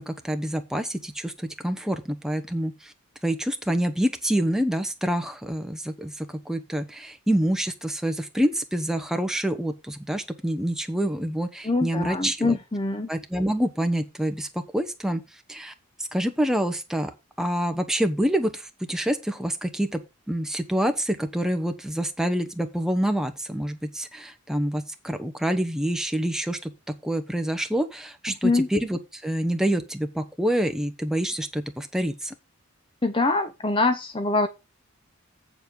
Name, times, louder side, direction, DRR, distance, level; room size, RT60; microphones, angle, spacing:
voice 1, 0.0-2.9 3.2-12.6 13.1-15.2 15.5-15.7 16.0-20.0 20.3-32.3, right 1 dB, ahead, 0.9 m, -27 dB
voice 2, 11.6-13.1 28.3-28.7 33.0-34.5, left 3 dB, 25° left, 0.7 m, -24 dB
8.0 x 7.1 x 5.2 m
head